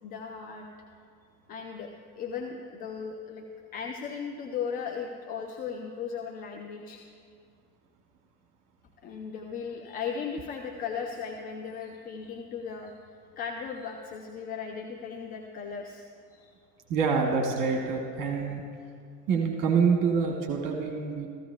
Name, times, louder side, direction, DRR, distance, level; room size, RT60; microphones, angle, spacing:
voice 1, 0.0-0.7 1.5-3.4 3.7-7.0 9.0-12.9 13.4-16.1 16.3-16.6, left 6 dB, 20° left, 3 dB, 0.4 m, -37 dB
voice 2, 16.9-18.6 19.3-21.3, right 5 dB, 40° right, 2 dB, 1.2 m, -26 dB
15.0 x 14.5 x 2.2 m, 2.3 s
figure-of-eight pair, 70°, 49 cm